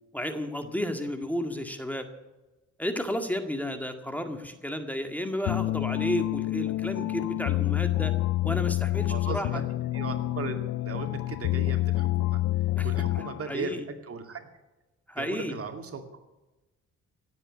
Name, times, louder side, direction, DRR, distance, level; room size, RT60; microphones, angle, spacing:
voice 1, 0.1-2.1 2.8-8.1 8.4-9.6 12.8-12.9 13.1-13.8 15.1-15.6, left 1 dB, 5° left, 6 dB, 1.9 m, -32 dB
sound 1, 5.5-13.6, left 16 dB, 70° left, 0.5 m, -28 dB
voice 2, 9.1-9.6 9.9-10.6 10.8-12.4 12.8-13.7 14.0-14.5 15.2-16.2, right 5 dB, 50° right, 6 dB, 2.4 m, -37 dB
17.0 x 8.1 x 9.6 m, 1.1 s
cardioid pair, 90°, 30 cm